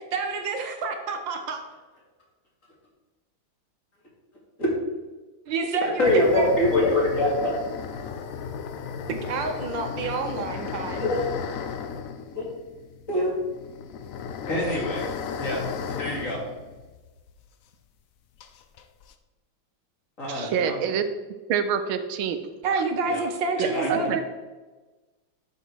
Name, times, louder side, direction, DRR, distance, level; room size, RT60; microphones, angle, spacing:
voice 1, 0.0-1.6 5.5-6.5 9.1-11.1 22.6-24.2, right 3 dB, 70° right, 5 dB, 1.7 m, -28 dB
sound 1, 6.0-17.5 17.7-17.8 18.4-19.1, left 7 dB, 80° left, 0.7 m, -35 dB
voice 2, 6.0-7.6 11.0-11.2 12.3-12.4 13.1-13.3 14.5-15.1 15.4-15.6 15.9-16.4 20.2-20.8 23.1-23.2 23.6-24.1, left 1 dB, 40° left, -3 dB, 2.8 m, -24 dB
voice 3, 20.3-21.0 21.5-22.4 22.7-22.8 23.9-24.2, right 8 dB, 90° right, 10 dB, 1.6 m, -26 dB
11.5 x 5.7 x 4.7 m, 1.2 s
omnidirectional pair, 2.2 m